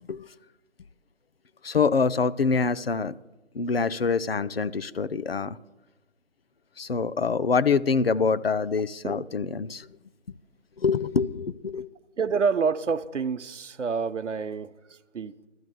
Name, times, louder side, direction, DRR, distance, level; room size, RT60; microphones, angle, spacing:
voice 1, 1.6-3.1 3.5-5.6 6.8-9.9 10.8-11.9, left 5 dB, 55° left, 0.5 m, -25 dB
voice 2, 12.2-15.5, right 5 dB, 80° right, 0.7 m, -28 dB
12.5 x 7.5 x 7.7 m
figure-of-eight pair, 170°, 36 cm